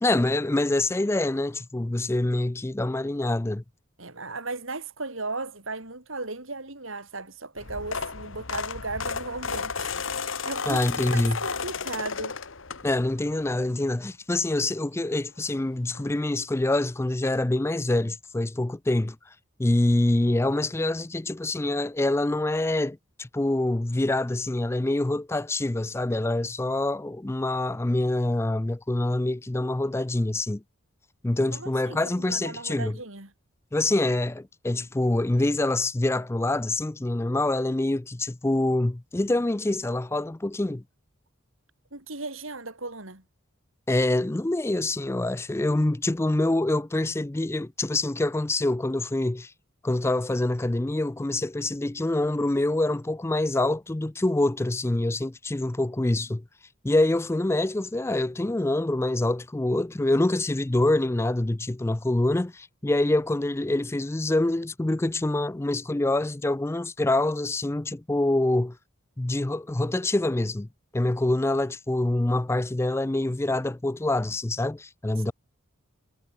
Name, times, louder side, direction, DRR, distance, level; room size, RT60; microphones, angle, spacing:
voice 1, 0.0-3.6 10.7-11.4 12.8-19.2 19.6-30.6 31.2-33.0 33.7-40.8 43.9-49.5 49.8-56.4 56.8-68.8 69.2-70.7 70.9-75.3, left 2 dB, 10° left, 0.4 m, -25 dB
voice 2, 4.0-12.4 31.5-32.0 32.3-33.3 41.9-43.2, right 3 dB, 70° right, 4.5 m, -36 dB
sound 1, 7.6-13.2 13.7-13.9 15.2-15.3 15.5-15.6 15.9-16.1, left 5 dB, 65° left, 1.5 m, -33 dB
head